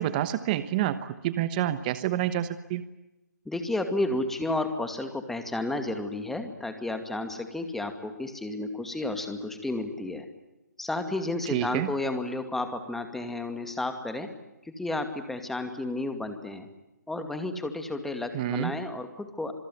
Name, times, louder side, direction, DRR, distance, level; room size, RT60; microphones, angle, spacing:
voice 1, 0.0-2.8 11.5-11.9 18.3-18.7, right 12 dB, 30° right, 13 dB, 1.1 m, -28 dB
voice 2, 3.5-10.3 10.8-14.3 14.6-16.7 17.1-19.5, left 2 dB, 5° left, 7 dB, 2.4 m, -32 dB
26.5 x 22.0 x 9.4 m, 0.96 s
hypercardioid pair, 150°, 10 cm